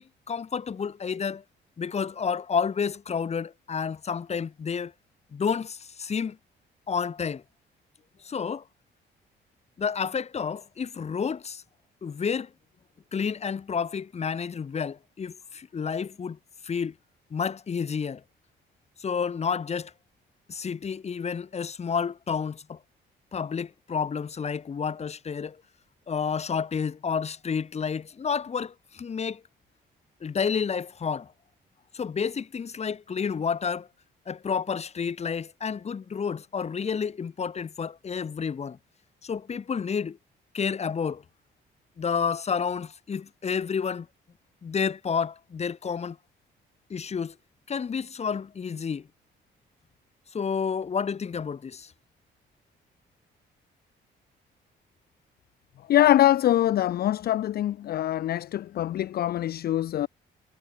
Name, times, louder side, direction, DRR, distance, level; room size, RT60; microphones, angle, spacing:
voice 1, 0.0-1.4 1.8-4.9 5.3-6.4 6.9-7.4 8.2-8.6 9.8-11.6 12.0-12.5 13.1-16.4 16.6-16.9 17.3-18.2 19.0-19.9 20.5-22.8 23.3-25.6 26.1-29.4 30.2-31.3 31.9-33.9 34.3-38.8 39.2-40.2 40.5-41.2 42.0-44.1 44.6-46.2 46.9-47.3 47.7-49.1 50.3-51.9, left 6 dB, 35° left, 0.9 m, -30 dB
voice 2, 55.9-60.1, left 12 dB, 50° left, 0.4 m, -23 dB
cardioid pair, 90°, 20 cm